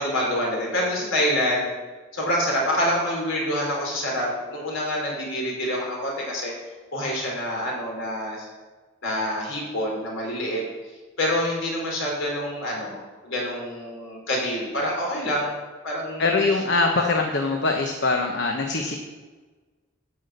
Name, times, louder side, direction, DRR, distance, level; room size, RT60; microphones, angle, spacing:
voice 1, 0.0-1.7 2.1-6.5 6.9-8.5 9.0-10.6 11.2-13.0 13.2-15.5 15.8-16.4, equal, 70° left, -2 dB, 4.1 m, -26 dB
voice 2, 16.2-19.0, left 3 dB, 55° left, 2 dB, 1.0 m, -23 dB
10.5 x 5.9 x 8.1 m, 1.3 s
head